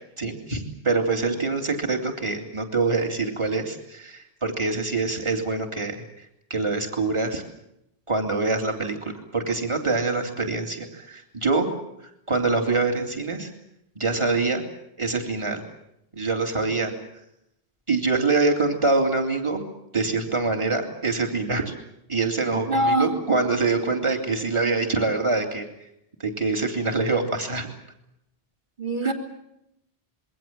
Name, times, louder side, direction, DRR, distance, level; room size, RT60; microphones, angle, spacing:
voice 1, 0.2-6.2 6.5-7.4 8.1-11.7 12.3-13.5 13.9-14.6 15.0-15.6 16.1-16.9 17.9-19.6 19.9-21.7 22.1-25.6 26.2-27.7 29.0-29.1, right 3 dB, 30° right, 3 dB, 3.2 m, -25 dB
voice 2, 22.5-23.1 28.8-29.1, right 1 dB, 50° right, 5 dB, 3.3 m, -23 dB
27.0 x 23.0 x 7.5 m, 0.79 s
omnidirectional pair, 1.1 m